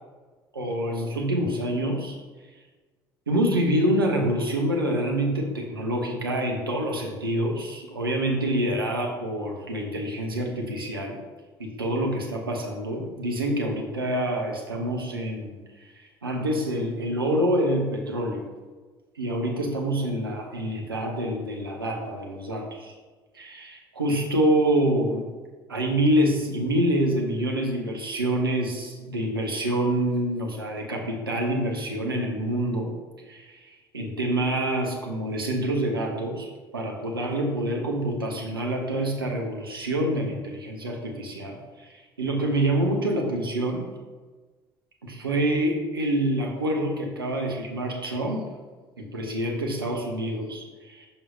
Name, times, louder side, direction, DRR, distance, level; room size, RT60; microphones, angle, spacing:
voice 1, 0.5-2.2 3.3-11.2 11.6-18.5 19.2-22.9 23.3-25.2 25.7-32.9 33.3-36.5 36.7-43.8 45.0-48.4 49.0-51.1, right 1 dB, 85° right, 0 dB, 0.9 m, -26 dB
7.0 x 5.6 x 2.7 m, 1.3 s
figure-of-eight pair, 60°, 12 cm